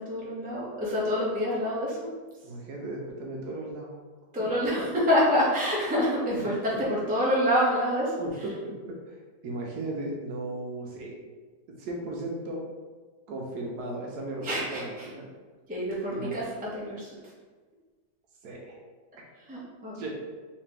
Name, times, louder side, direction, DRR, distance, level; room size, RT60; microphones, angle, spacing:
voice 1, 0.0-2.1 4.3-8.4 14.4-15.1 15.7-16.5 16.7-17.2 19.5-19.9, equal, 10° right, -6 dB, 0.5 m, -27 dB
voice 2, 2.4-3.9 6.5-6.6 8.2-9.2 9.4-11.1 11.8-12.6 13.3-14.4 14.7-15.3 16.1-16.4 18.4-18.7 19.9-20.1, right 2 dB, 70° right, -1 dB, 1.1 m, -36 dB
3.4 x 3.2 x 3.2 m, 1.4 s
omnidirectional pair, 1.9 m